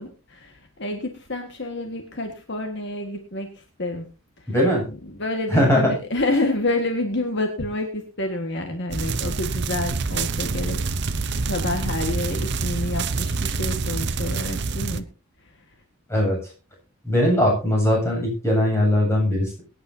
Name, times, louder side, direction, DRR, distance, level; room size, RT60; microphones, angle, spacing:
voice 1, 0.0-4.1 4.4-4.5 4.9-15.1 15.4-15.7, left 2 dB, 55° left, 4 dB, 1.7 m, -29 dB
voice 2, 4.5-4.8 5.5-5.9 16.1-16.4 17.0-19.6, left 1 dB, 10° left, -2 dB, 7.9 m, -20 dB
sound 1, 8.9-15.0, right 4 dB, 50° right, 0.8 m, -26 dB
23.0 x 10.5 x 2.8 m, 0.32 s
head